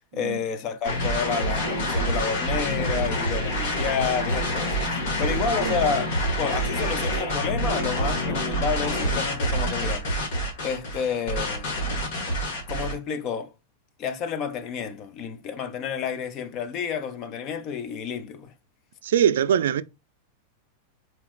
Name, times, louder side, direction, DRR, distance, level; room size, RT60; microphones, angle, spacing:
voice 1, 0.1-10.3 10.6-11.7 12.7-13.5 14.0-18.5, left 6 dB, 30° left, 0.4 m, -30 dB
sound 1, 0.8-12.9, equal, 50° left, 1.5 m, -27 dB
voice 2, 19.0-19.8, right 9 dB, 90° right, 0.3 m, -22 dB
4.3 x 3.0 x 2.3 m
supercardioid pair, 175°, 0 cm